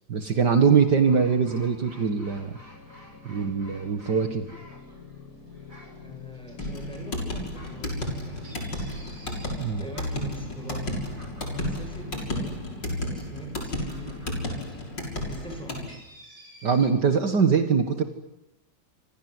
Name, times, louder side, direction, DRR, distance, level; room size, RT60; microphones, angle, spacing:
voice 1, 0.1-2.5 3.3-4.5 9.6-9.8 16.6-18.0, right 6 dB, 60° right, 8 dB, 2.4 m, -22 dB
sound 1, 0.7-11.9, left 3 dB, 45° left, 4.1 m, -48 dB
sound 2, 1.0-16.9, equal, 40° right, 8.1 m, -53 dB
voice 2, 6.0-7.9 8.2-8.8 9.8-11.0 11.5-14.8 15.2-16.0, equal, ahead, 3 dB, 7.6 m, -43 dB
sound 3, 6.6-15.9, left 1 dB, 60° left, 7.1 m, -33 dB
28.0 x 25.5 x 8.1 m, 0.93 s
omnidirectional pair, 2.1 m